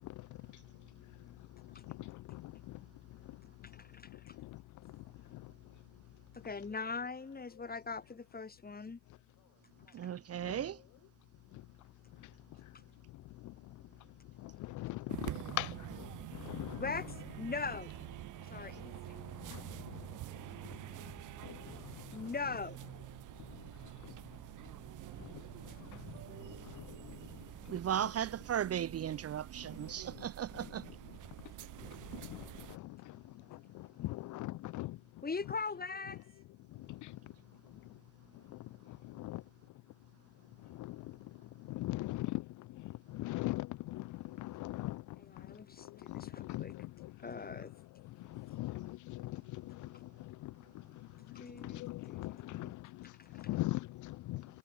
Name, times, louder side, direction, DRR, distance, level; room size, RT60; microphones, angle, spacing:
voice 1, 1.9-2.5 4.4-4.5 5.3-5.4 10.5-10.6 14.4-16.1 16.3-16.8 19.5-19.6 21.5-21.6 26.7-26.9 32.1-33.2 33.5-35.0 36.9-37.2 38.9-39.4 40.7-41.0 41.7-42.4 42.8-45.0 46.1-47.1 48.3-50.5 51.3-54.5, left 18 dB, 75° left, 0.5 m, -41 dB
voice 2, 3.7-4.4 6.3-9.0 16.8-17.9 18.5-19.0 22.1-22.8 35.2-36.2 45.2-46.7 47.2-47.7 51.3-52.7 53.2-53.3, left 4 dB, 30° left, 7.4 m, -41 dB
voice 3, 9.9-10.8 26.1-27.0 27.7-30.8, right 10 dB, 55° right, 0.9 m, -37 dB
sound 1, 15.1-32.8, right 15 dB, 85° right, 2.5 m, -47 dB
cardioid pair, 90°, 30 cm